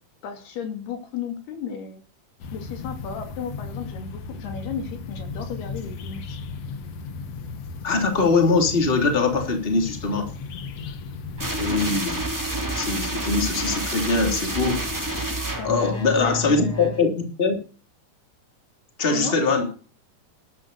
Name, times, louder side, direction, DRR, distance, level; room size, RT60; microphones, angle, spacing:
voice 1, 0.2-2.0 2.5-6.4 15.6-17.0 19.1-19.4, left 7 dB, 80° left, 6 dB, 4.6 m, -34 dB
sound 1, 2.4-12.0, left 4 dB, 60° left, 1.8 m, -36 dB
voice 2, 7.8-10.3 11.6-12.2 12.7-14.8 15.6-17.1 17.4-17.5 19.0-19.7, left 4 dB, 15° left, 4 dB, 3.0 m, -22 dB
sound 2, 11.4-17.0, right 1 dB, 5° right, 2.6 m, -29 dB
13.0 x 10.5 x 6.8 m, 0.38 s
omnidirectional pair, 4.5 m